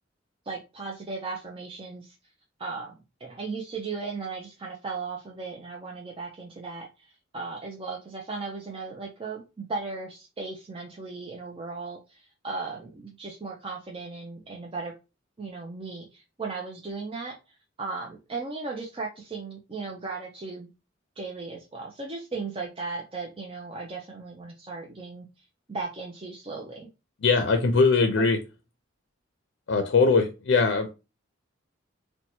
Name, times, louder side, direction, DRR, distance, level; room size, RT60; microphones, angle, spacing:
voice 1, 0.4-2.1 2.6-14.9 15.4-20.7 21.2-25.3 25.7-26.9 28.2-28.3, right 4 dB, 30° right, -1 dB, 0.5 m, -36 dB
voice 2, 27.2-28.4 29.7-30.9, left 4 dB, 65° left, 5 dB, 0.5 m, -21 dB
2.8 x 2.2 x 4.1 m, 0.28 s
head